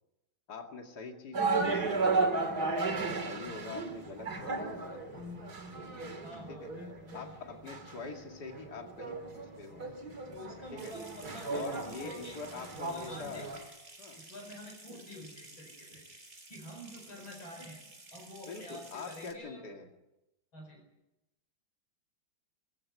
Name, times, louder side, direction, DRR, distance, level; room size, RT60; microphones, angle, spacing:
voice 1, 0.5-1.9 3.1-5.3 6.5-6.7 7.1-9.8 10.7-10.9 11.5-13.5 14.0-14.2 18.5-19.9, left 4 dB, 55° left, 3 dB, 2.9 m, -44 dB
sound 1, 1.3-13.6, right 3 dB, 50° right, 3.3 m, -35 dB
voice 2, 6.2-7.8 10.3-12.4 12.8-13.7 14.2-16.0 16.5-17.8 18.1-19.7 20.5-20.8, left 1 dB, 80° left, 3 dB, 5.7 m, -48 dB
Water tap faucet / Sink (filling or washing) / Trickle dribble, 10.8-19.3, right 2 dB, 30° right, 5.2 m, -53 dB
23.0 x 15.5 x 9.6 m, 0.96 s
omnidirectional pair, 2.2 m